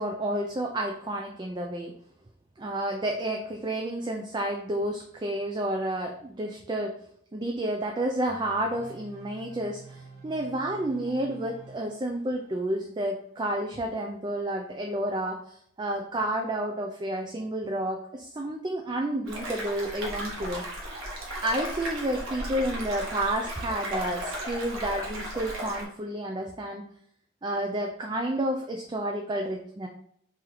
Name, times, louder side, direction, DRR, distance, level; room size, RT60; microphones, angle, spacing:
voice 1, 0.0-1.9 2.6-7.0 7.3-20.6 21.4-26.9 27.4-29.9, right 1 dB, 20° right, 2 dB, 0.4 m, -30 dB
sound 1, 8.3-14.0, right 4 dB, 45° right, 1.5 m, -49 dB
sound 2, 19.3-25.8, right 1 dB, 80° right, 1.5 m, -35 dB
4.2 x 3.1 x 3.9 m, 0.67 s
head